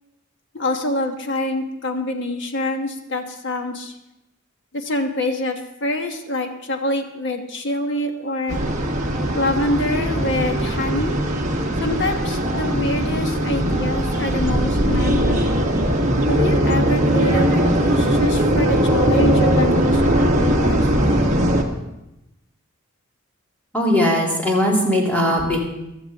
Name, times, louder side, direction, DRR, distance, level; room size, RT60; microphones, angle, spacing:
voice 1, 0.5-3.9 4.7-8.6 9.3-11.2 11.8-15.7 16.3-20.8, left 1 dB, 60° left, 4 dB, 1.4 m, -25 dB
sound 1, 8.5-21.6, right 1 dB, 35° right, 1.5 m, -19 dB
voice 2, 23.7-25.6, equal, 5° left, -3 dB, 2.8 m, -19 dB
16.0 x 12.5 x 3.6 m, 0.92 s
head